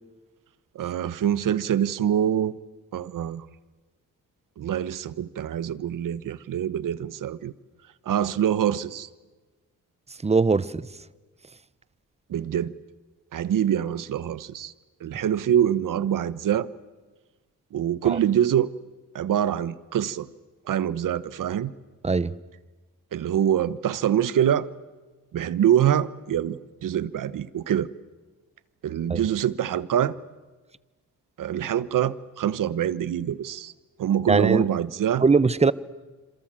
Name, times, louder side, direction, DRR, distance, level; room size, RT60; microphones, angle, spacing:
voice 1, 0.7-2.5 2.9-3.5 4.6-7.5 8.1-9.1 12.3-12.7 13.3-14.7 15.0-16.7 17.7-18.7 19.1-20.3 20.7-21.7 23.1-24.7 25.3-27.9 28.8-30.1 31.4-33.7 34.0-35.2, right 10 dB, 70° right, 1.2 m, -25 dB
voice 2, 10.2-10.8 18.0-18.2 22.0-22.3 29.1-29.2 34.3-34.7 35.2-35.7, right 4 dB, 20° right, 0.9 m, -20 dB
27.5 x 27.5 x 7.7 m
cardioid pair, 100°, 33 cm